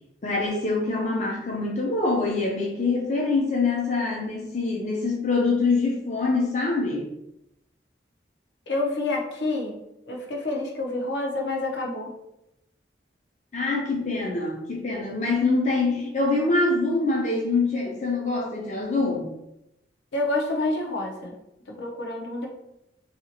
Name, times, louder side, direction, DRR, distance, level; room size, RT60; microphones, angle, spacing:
voice 1, 0.2-7.1 13.5-19.3, left 3 dB, 40° left, -1 dB, 0.4 m, -25 dB
voice 2, 8.7-9.8 10.1-12.1 20.1-21.3 21.8-22.5, left 2 dB, 80° left, 0 dB, 0.7 m, -28 dB
2.8 x 2.8 x 2.8 m, 0.86 s
head